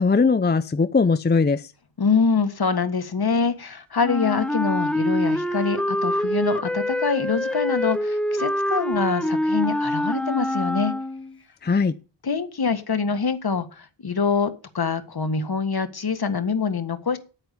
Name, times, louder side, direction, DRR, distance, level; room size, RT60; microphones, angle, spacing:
voice 1, 0.0-1.7 11.6-12.0, left 4 dB, 20° left, 13 dB, 0.6 m, -20 dB
voice 2, 2.0-10.9 12.2-17.2, left 5 dB, 55° left, 10 dB, 1.7 m, -25 dB
Wind instrument woodwind instrument, 4.0-11.4, left 1 dB, ahead, 0.9 m, -25 dB
9.0 x 8.9 x 6.9 m, 0.34 s
wide cardioid pair, 80°, 46 cm